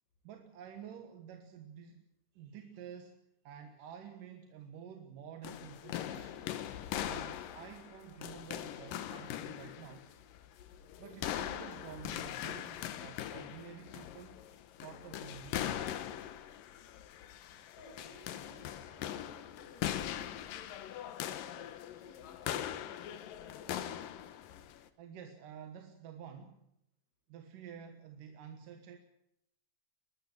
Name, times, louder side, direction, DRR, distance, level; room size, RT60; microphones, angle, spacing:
voice 1, 0.2-2.0 2.3-3.2 3.4-6.5 7.0-10.1 11.0-14.4 14.8-16.1 22.2-22.3 25.0-26.6 27.3-29.0, right 8 dB, 80° right, 5 dB, 3.0 m, -50 dB
sound 1, 5.4-24.9, left 11 dB, 80° left, 2.8 m, -41 dB
voice 2, 17.4-23.8, left 2 dB, 55° left, 1 dB, 8.6 m, -59 dB
22.5 x 12.5 x 9.9 m, 0.77 s
omnidirectional pair, 3.9 m